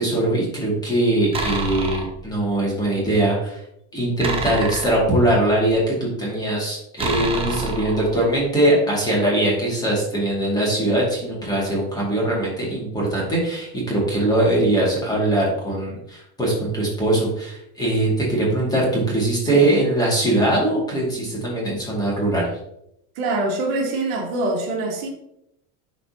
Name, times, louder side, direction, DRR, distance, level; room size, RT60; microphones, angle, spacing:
voice 1, 0.0-3.6 3.9-22.5, right 1 dB, 10° left, -4 dB, 2.2 m, -21 dB
sound 1, 1.3-2.2 4.2-5.7 7.0-8.4, right 3 dB, 15° right, 0.7 m, -28 dB
voice 2, 23.2-25.1, right 2 dB, 60° right, 0 dB, 1.9 m, -24 dB
11.0 x 4.3 x 2.8 m, 0.77 s
supercardioid pair, 160°, 40 cm